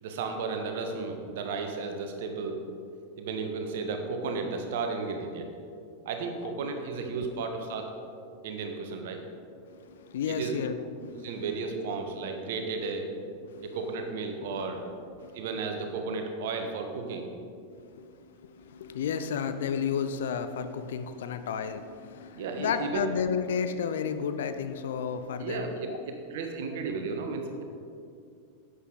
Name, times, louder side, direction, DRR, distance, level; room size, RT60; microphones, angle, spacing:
voice 1, 0.0-2.6 3.2-5.5 6.0-7.9 8.4-9.2 10.3-10.5 11.1-13.1 13.6-14.8 15.3-17.3 22.3-23.0 25.4-27.4, right 4 dB, 55° right, 5 dB, 1.2 m, -34 dB
voice 2, 9.6-11.4 12.2-12.6 13.4-13.8 14.4-14.6 15.1-15.5 17.7-26.0, left 7 dB, 60° left, 10 dB, 0.5 m, -33 dB
11.0 x 8.2 x 3.9 m, 2.4 s
figure-of-eight pair, 90°, 0 cm